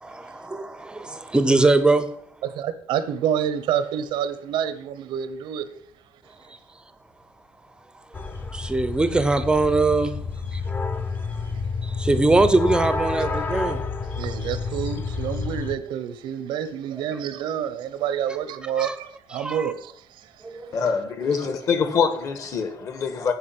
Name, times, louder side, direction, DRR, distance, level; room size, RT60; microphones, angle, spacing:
voice 1, 0.0-2.1 8.5-10.2 10.5-10.6 11.8-13.8 18.8-19.0 19.3-19.7 20.4-20.9, right 2 dB, 10° right, 0.6 m, -22 dB
voice 2, 2.4-5.7 14.2-20.3 20.6-20.9, right 9 dB, 85° right, 1.0 m, -28 dB
sound 1, 8.1-15.8, left 4 dB, 25° left, 0.8 m, -29 dB
voice 3, 20.7-23.3, left 6 dB, 45° left, 1.5 m, -24 dB
9.9 x 5.1 x 7.7 m
cardioid pair, 170°, 8 cm